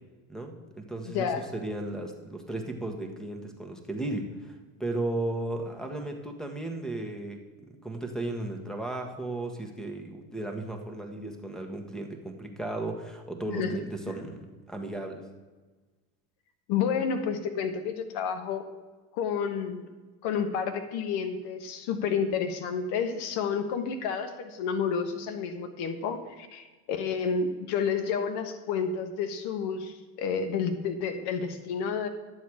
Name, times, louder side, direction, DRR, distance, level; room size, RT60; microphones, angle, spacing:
voice 1, 0.3-15.2, right 2 dB, ahead, 4 dB, 1.5 m, -35 dB
voice 2, 1.0-1.4 13.5-13.7 14.1-14.2 16.7-18.7 19.2-19.9 20.2-32.1, left 6 dB, 60° left, 8 dB, 1.3 m, -30 dB
10.5 x 7.3 x 4.9 m, 1.3 s
hypercardioid pair, 85°, 44 cm